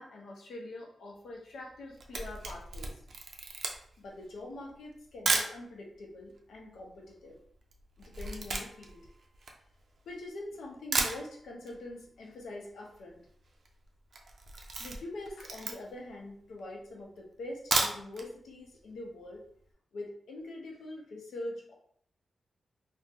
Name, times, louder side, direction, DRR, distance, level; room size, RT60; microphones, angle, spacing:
voice 1, 0.0-3.0 4.0-7.4 8.0-9.1 10.1-13.2 14.8-19.4 19.9-21.7, left 2 dB, 90° left, -1 dB, 0.6 m, -44 dB
Camera, 1.7-5.6 6.3-6.4 6.6-10.2 10.6-10.7 10.9-11.8 12.0-12.1 12.4-12.5 12.7-13.1 13.5-13.7 14.1-16.1 16.6-16.7 17.5-18.3 18.6-18.7 19.1-19.2, right 3 dB, 65° right, 0.4 m, -34 dB
2.5 x 2.1 x 3.4 m, 0.62 s
cardioid pair, 95°, 0 cm